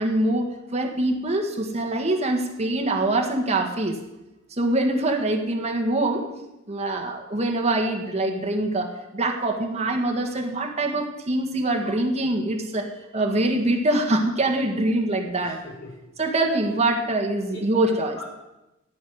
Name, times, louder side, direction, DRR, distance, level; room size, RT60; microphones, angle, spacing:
voice 1, 0.0-4.0 4.5-6.3 6.7-12.9 13.1-15.6 16.2-18.2, right 2 dB, 30° right, 2 dB, 1.7 m, -24 dB
voice 2, 15.4-15.9 17.5-18.2, left 2 dB, 75° left, -2 dB, 5.9 m, -42 dB
14.0 x 6.5 x 9.6 m, 0.97 s
head